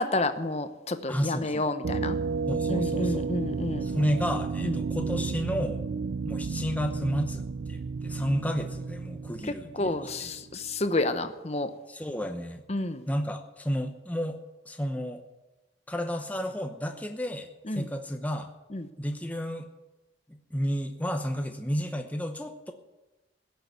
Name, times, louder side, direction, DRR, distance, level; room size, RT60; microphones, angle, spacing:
voice 1, 0.0-2.2 2.7-3.9 4.6-4.8 9.5-11.7 12.7-13.1 17.6-17.9 18.7-18.9, left 2 dB, 35° left, 0.9 m, -30 dB
voice 2, 1.1-1.7 2.5-3.3 3.8-5.9 6.2-10.3 11.9-12.6 13.1-14.4 14.7-15.2 15.9-18.5 19.0-19.7 20.3-22.7, equal, 10° left, 0.9 m, -32 dB
sound 1, 1.8-10.5, right 5 dB, 65° right, 0.4 m, -32 dB
16.0 x 6.8 x 9.4 m
head